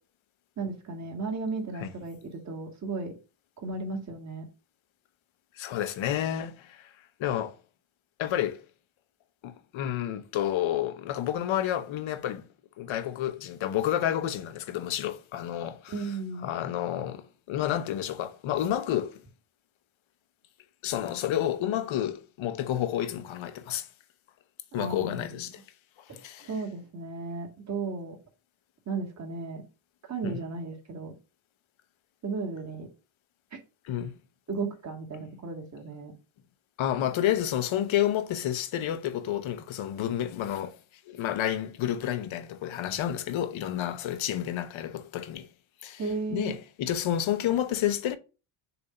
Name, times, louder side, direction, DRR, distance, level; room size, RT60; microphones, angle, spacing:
voice 1, 0.6-3.1 3.6-4.5 15.9-16.5 24.8-25.3 26.1-28.2 28.9-29.6 30.1-31.1 32.2-32.9 34.5-36.1 46.0-46.5, right 3 dB, 35° right, 1.9 m, -35 dB
voice 2, 5.5-6.9 7.2-7.6 8.2-8.6 9.4-12.5 12.8-16.1 16.4-19.2 20.8-23.9 24.7-25.6 26.1-26.5 30.2-30.5 33.8-34.1 36.8-40.8 41.1-45.5 45.8-46.0 46.3-48.2, left 11 dB, 70° left, 0.9 m, -30 dB
6.8 x 2.7 x 5.5 m
cardioid pair, 135°, 49 cm